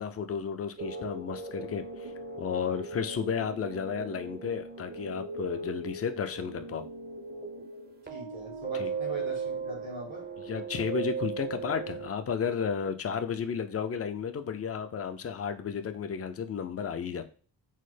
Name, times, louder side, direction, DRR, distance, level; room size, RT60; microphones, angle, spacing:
voice 1, 0.0-2.1 2.4-6.8 8.8-8.9 10.5-17.2, left 6 dB, 35° left, 9 dB, 0.4 m, -33 dB
sound 1, 0.8-12.1, right 4 dB, 20° right, 0.5 m, -38 dB
voice 2, 8.1-10.3, right 2 dB, 85° right, -1 dB, 1.5 m, -41 dB
3.2 x 2.0 x 3.2 m, 0.40 s
cardioid pair, 50°, 46 cm